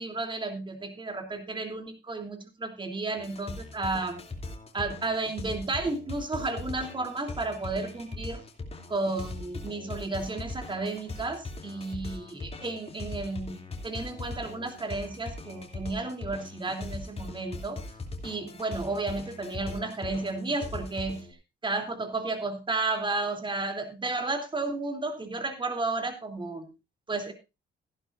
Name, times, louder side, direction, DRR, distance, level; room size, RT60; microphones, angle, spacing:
voice 1, 0.0-4.2 4.7-8.4 8.9-17.8 18.2-21.2 21.6-26.7 27.1-27.3, right 3 dB, 25° right, 5 dB, 3.1 m, -32 dB
sound 1, 3.2-21.3, left 3 dB, 30° left, 2.9 m, -40 dB
15.0 x 11.0 x 2.6 m, 0.26 s
cardioid pair, 90°, 20 cm